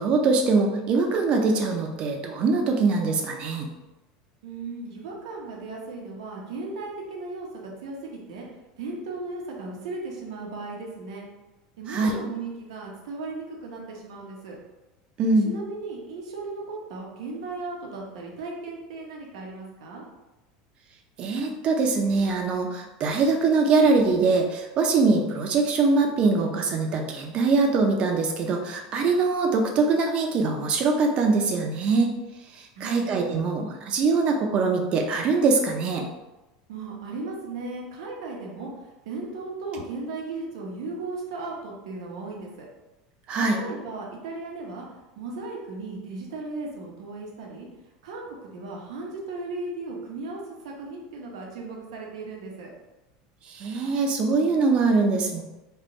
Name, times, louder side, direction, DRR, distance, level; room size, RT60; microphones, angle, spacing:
voice 1, 0.0-3.7 11.9-12.1 15.2-15.5 21.2-32.1 32.8-36.1 43.3-43.6 53.5-55.4, right 4 dB, 35° right, 3 dB, 0.5 m, -23 dB
voice 2, 4.4-8.5 8.8-11.3 11.8-14.6 15.4-20.0 32.8-33.1 36.7-38.7 39.0-42.7 43.4-44.9 45.2-47.7 48.0-52.7, right 3 dB, 90° right, -1 dB, 0.9 m, -36 dB
3.5 x 2.2 x 3.8 m, 1.0 s
supercardioid pair, 155°, 3 cm